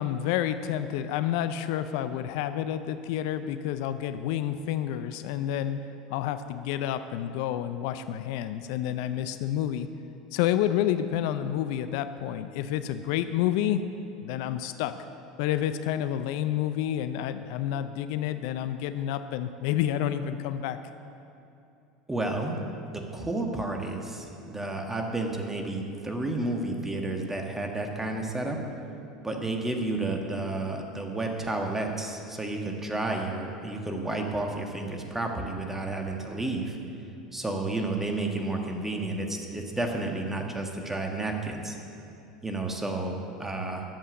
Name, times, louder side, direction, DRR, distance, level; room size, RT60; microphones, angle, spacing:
voice 1, 0.0-5.8 6.1-9.9 10.3-13.8 14.2-15.0 15.4-20.8, left 11 dB, 65° left, 11 dB, 0.5 m, -29 dB
voice 2, 22.1-22.6 22.9-28.6 29.2-36.8 37.3-41.8 42.4-43.8, right 2 dB, 10° right, 2 dB, 1.6 m, -31 dB
11.5 x 7.6 x 6.9 m, 2.7 s
hypercardioid pair, 80°, 3 cm